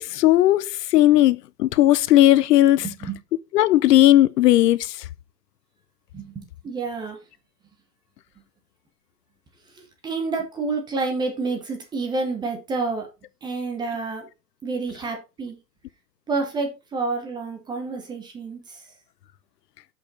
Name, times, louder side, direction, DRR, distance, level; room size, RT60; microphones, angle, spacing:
voice 1, 0.0-2.9 3.5-5.1, left 14 dB, 70° left, 0.6 m, -17 dB
voice 2, 2.8-3.2 6.1-7.2 10.0-13.1 13.4-14.2 14.6-15.6 16.3-18.8, right 3 dB, 10° right, 0.8 m, -29 dB
6.3 x 5.4 x 4.1 m
hypercardioid pair, 155°, 50 cm